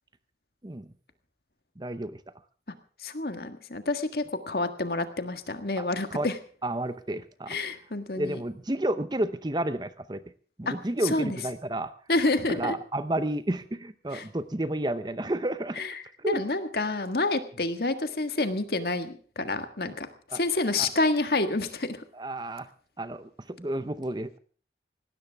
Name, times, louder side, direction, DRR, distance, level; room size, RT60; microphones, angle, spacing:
voice 1, 1.8-2.2 5.8-5.9 6.1-6.3 6.6-7.6 8.2-10.2 10.6-11.9 12.5-15.8 16.2-16.4 20.3-20.4 20.8-20.9 22.1-22.7 23.0-24.4, right 1 dB, 25° right, 12 dB, 0.7 m, -31 dB
voice 2, 3.0-6.4 7.5-8.4 10.7-10.8 11.0-11.4 12.1-12.8 14.1-14.3 15.8-22.0, left 2 dB, 65° left, 8 dB, 1.7 m, -28 dB
19.0 x 17.0 x 3.5 m, 0.43 s
head